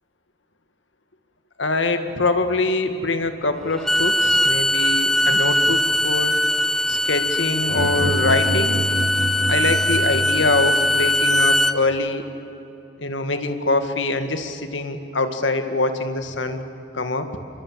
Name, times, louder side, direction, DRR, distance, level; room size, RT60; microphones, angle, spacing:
voice 1, 1.6-6.4 6.9-8.8 9.5-12.3 13.0-16.6 16.9-17.3, left 2 dB, 85° left, 8 dB, 2.1 m, -24 dB
Bowed string instrument, 3.7-11.8, left 1 dB, ahead, 0.5 m, -20 dB
sound 1, 7.7-10.9, right 2 dB, 45° right, 1.7 m, -27 dB
27.5 x 25.0 x 7.6 m, 2.9 s
head